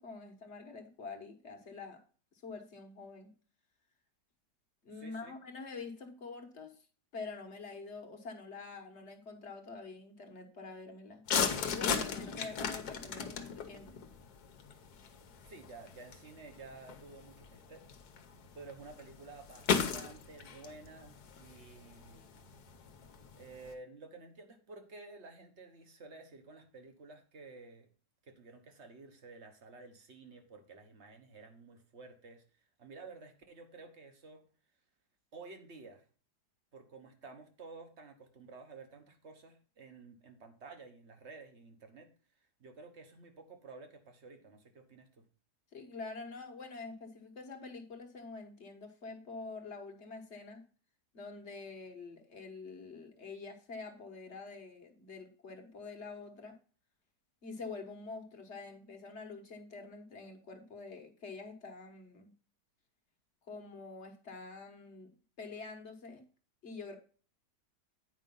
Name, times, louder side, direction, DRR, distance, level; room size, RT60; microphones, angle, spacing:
voice 1, 0.0-2.0 2.4-3.3 4.8-6.9 7.1-13.9 45.7-50.6 51.1-56.6 57.4-62.3 63.5-65.1 65.4-66.2 66.6-67.0, left 4 dB, 45° left, 4 dB, 1.5 m, -46 dB
voice 2, 4.9-5.3 15.5-17.8 18.5-22.3 23.4-27.9 28.2-32.4 32.8-34.4 35.3-36.0 36.7-42.1 42.6-45.2, right 3 dB, 45° right, 6 dB, 1.4 m, -52 dB
sound 1, 11.3-23.7, left 6 dB, 70° left, 1.5 m, -38 dB
9.2 x 5.2 x 5.3 m, 0.39 s
omnidirectional pair, 1.8 m